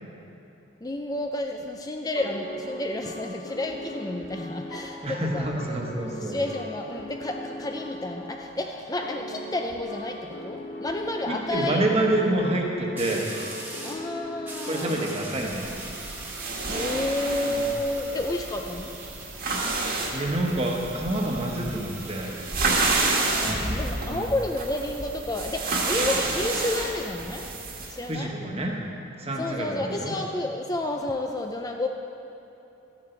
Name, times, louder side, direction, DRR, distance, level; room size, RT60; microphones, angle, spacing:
voice 1, 0.8-5.5 6.2-11.8 13.8-15.1 16.7-18.9 23.3-27.4 27.9-28.3 29.4-31.9, left 2 dB, 20° left, 3 dB, 0.5 m, -30 dB
sound 1, 2.1-15.9, equal, 60° left, 1.6 m, -39 dB
voice 2, 5.0-6.4 11.3-13.2 14.7-15.7 17.5-17.7 20.1-22.3 24.0-24.3 28.1-28.7 29.2-30.1, right 1 dB, 30° right, 0 dB, 1.3 m, -27 dB
sound 2, 10.0-10.1 13.0-14.1 14.4-19.4 20.4-23.0, right 2 dB, 10° right, 1.2 m, -41 dB
sound 3, 15.5-28.0, right 3 dB, 50° right, 1.6 m, -30 dB
13.0 x 10.5 x 4.5 m, 2.9 s
head